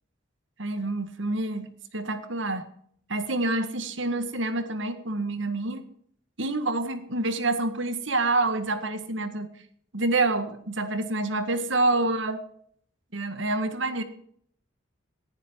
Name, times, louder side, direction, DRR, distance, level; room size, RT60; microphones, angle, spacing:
voice 1, 0.6-2.6 3.1-5.8 6.4-9.5 9.9-12.5 13.1-14.0, right 2 dB, 65° right, 10 dB, 1.8 m, -27 dB
19.0 x 11.0 x 4.6 m, 0.64 s
head